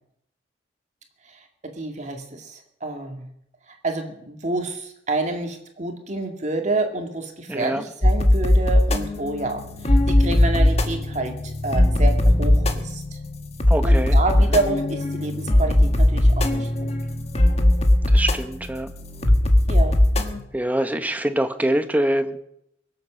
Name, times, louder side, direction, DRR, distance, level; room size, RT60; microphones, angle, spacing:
voice 1, 1.8-3.3 3.7-13.2 13.8-16.9 19.7-20.0, right 2 dB, 40° right, 3 dB, 2.2 m, -28 dB
voice 2, 7.5-7.8 13.7-14.2 18.1-18.9 20.5-22.4, right 1 dB, 10° right, 9 dB, 1.0 m, -24 dB
sound 1, 8.0-20.4, left 1 dB, 35° left, 1.4 m, -19 dB
23.0 x 7.7 x 6.4 m, 0.74 s
head